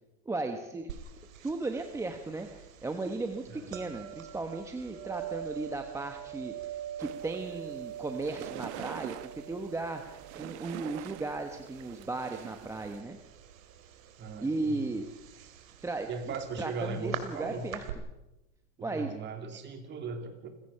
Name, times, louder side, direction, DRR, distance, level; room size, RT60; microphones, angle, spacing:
voice 1, 0.3-1.0 1.4-13.2 14.4-15.1 15.8-16.1 16.6-17.8 18.8-19.1 19.5-19.6, right 3 dB, 5° right, 5 dB, 1.0 m, -36 dB
sound 1, 0.9-17.9, right 10 dB, 75° right, 2.7 m, -45 dB
sound 2, 7.0-13.0, right 14 dB, 55° right, 1.3 m, -46 dB
voice 2, 14.2-14.9 16.1-17.7 18.8-20.5, right 4 dB, 25° right, 6 dB, 3.0 m, -38 dB
28.5 x 16.5 x 5.7 m, 0.97 s
supercardioid pair, 140°, 40 cm